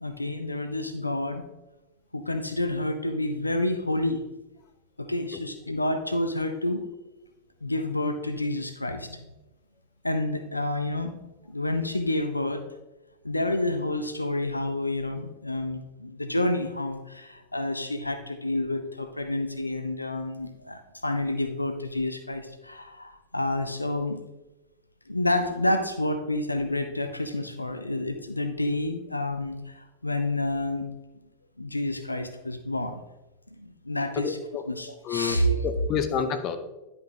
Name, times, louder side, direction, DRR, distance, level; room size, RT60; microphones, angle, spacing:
voice 1, 0.0-1.4 2.1-4.2 5.0-6.8 7.6-9.3 10.0-11.1 11.5-12.7 13.2-24.2 25.1-30.9 31.6-33.0 33.6-34.4 34.7-35.7, left 1 dB, 85° left, 8 dB, 0.5 m, -29 dB
voice 2, 34.2-34.6 35.0-35.4 35.6-36.6, left 7 dB, 35° left, 9 dB, 0.6 m, -28 dB
10.5 x 5.2 x 2.8 m, 1.0 s
figure-of-eight pair, 90°, 0 cm